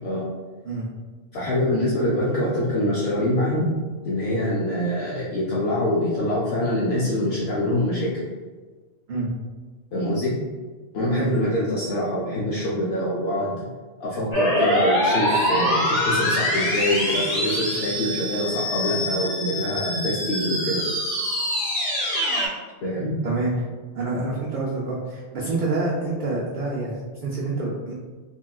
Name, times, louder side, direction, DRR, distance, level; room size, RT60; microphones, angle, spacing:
voice 1, 1.3-3.7 4.0-8.3 9.9-10.3 10.9-13.5 14.0-20.9 22.8-23.1, left 1 dB, 70° left, -6 dB, 0.8 m, -25 dB
voice 2, 11.1-11.6 23.2-23.7 24.0-27.9, right 2 dB, 60° right, -5 dB, 0.5 m, -27 dB
sound 1, 14.3-22.5, left 1 dB, 35° left, 0.8 m, -24 dB
3.5 x 2.3 x 2.2 m, 1.4 s
omnidirectional pair, 1.2 m